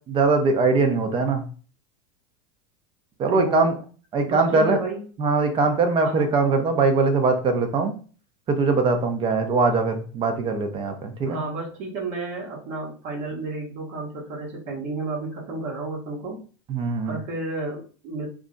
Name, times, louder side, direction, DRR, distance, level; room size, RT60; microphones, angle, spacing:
voice 1, 0.1-1.4 3.2-3.7 4.1-4.8 5.2-7.9 8.5-11.4 16.7-17.2, right 3 dB, 30° right, 6 dB, 0.7 m, -21 dB
voice 2, 3.3-3.7 4.3-5.0 6.0-6.3 11.2-16.4 17.0-18.3, right 3 dB, 50° right, -1 dB, 1.1 m, -32 dB
2.4 x 2.0 x 3.8 m, 0.39 s
hypercardioid pair, 105°, 16 cm